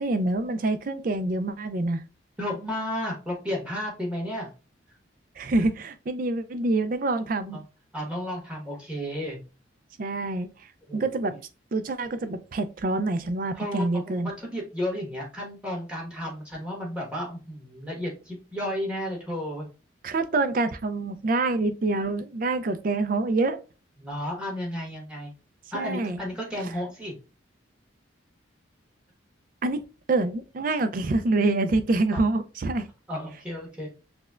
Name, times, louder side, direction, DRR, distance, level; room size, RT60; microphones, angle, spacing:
voice 1, 0.0-2.0 5.4-7.6 10.0-10.5 10.9-11.3 11.7-14.3 20.0-23.6 25.7-26.2 29.6-29.8 30.1-32.9, right 2 dB, 45° right, 0.4 m, -26 dB
voice 2, 2.4-4.5 7.5-7.6 7.9-9.4 10.9-11.4 13.5-19.7 24.0-25.3 25.7-27.1 32.1-32.2 33.1-33.9, left 1 dB, 5° right, 1.1 m, -33 dB
5.8 x 2.2 x 2.3 m
head